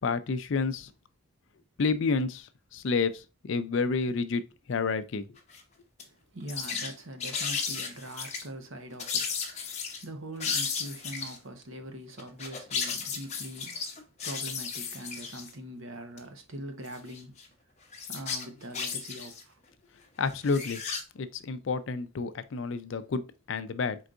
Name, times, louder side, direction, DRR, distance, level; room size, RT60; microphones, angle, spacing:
voice 1, 0.0-0.9 1.8-2.5 2.7-3.1 3.4-4.4 4.7-5.2 20.2-20.8 21.2-23.2 23.5-24.0, left 4 dB, 65° left, 0.4 m, -29 dB
sound 1, 5.4-5.6 6.0-6.1 6.4-6.9 7.2-8.4 9.0-10.0 10.4-11.4 12.2-15.5 16.2-16.3 16.8-17.4 17.9-19.4 20.3-21.0, left 5 dB, 30° left, 0.8 m, -34 dB
voice 2, 6.0-17.4 18.1-19.6, right 1 dB, 65° right, 0.9 m, -43 dB
4.4 x 3.9 x 2.4 m
head